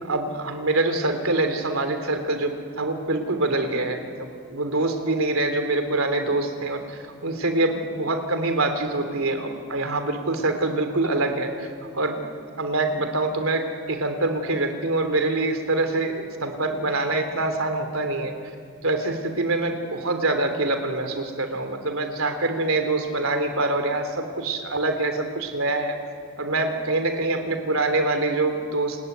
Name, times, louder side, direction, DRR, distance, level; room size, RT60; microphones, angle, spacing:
voice 1, 0.0-11.7 11.9-12.2 12.6-18.3 18.8-25.9 26.4-29.0, right 2 dB, 85° right, 7 dB, 3.4 m, -25 dB
29.5 x 20.5 x 9.5 m, 2.1 s
head